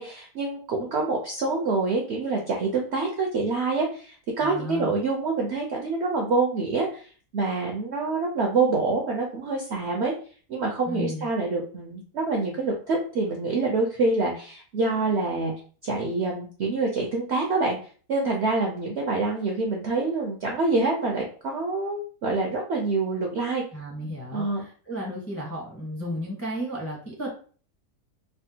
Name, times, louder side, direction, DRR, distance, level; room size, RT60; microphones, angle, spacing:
voice 1, 0.0-7.1 7.3-10.1 10.5-15.5 15.8-17.8 18.1-23.6 24.3-24.6, right 3 dB, 65° right, 0 dB, 0.6 m, -26 dB
voice 2, 4.4-4.9 10.8-11.3 23.7-27.3, equal, 15° left, -3 dB, 0.5 m, -33 dB
3.4 x 2.1 x 2.7 m, 0.42 s
omnidirectional pair, 1.7 m